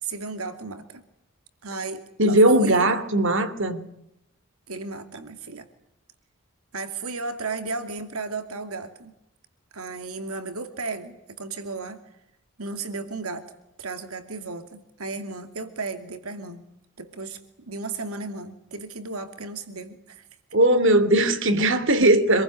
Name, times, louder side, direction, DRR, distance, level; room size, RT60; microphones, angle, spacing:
voice 1, 0.0-1.0 1.6-3.0 4.7-5.7 6.7-9.1 9.7-12.0 12.6-13.5 13.8-16.6 17.0-17.4 17.7-20.3, right 3 dB, 80° right, 2.5 m, -34 dB
voice 2, 2.2-3.8 20.5-22.4, right 1 dB, 60° right, 2.8 m, -19 dB
26.5 x 22.0 x 9.9 m
head